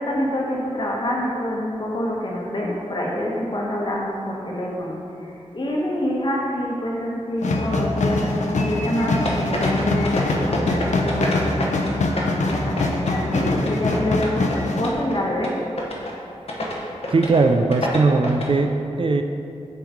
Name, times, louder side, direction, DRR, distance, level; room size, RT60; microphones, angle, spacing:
voice 1, 0.0-11.6 12.0-15.6, left 1 dB, 40° left, -2 dB, 1.2 m, -26 dB
sound 1, 7.4-14.9, left 2 dB, 85° left, 0.6 m, -23 dB
sound 2, 9.3-11.9 12.2-14.6 14.8-15.2 15.4-15.5 15.8-16.1 16.5-16.8 17.0-17.4 17.7-18.5, left 1 dB, 60° left, 1.0 m, -27 dB
voice 2, 17.1-19.2, right 3 dB, 45° right, 5 dB, 0.4 m, -19 dB
8.2 x 3.0 x 5.1 m, 2.6 s
cardioid pair, 55°, 12 cm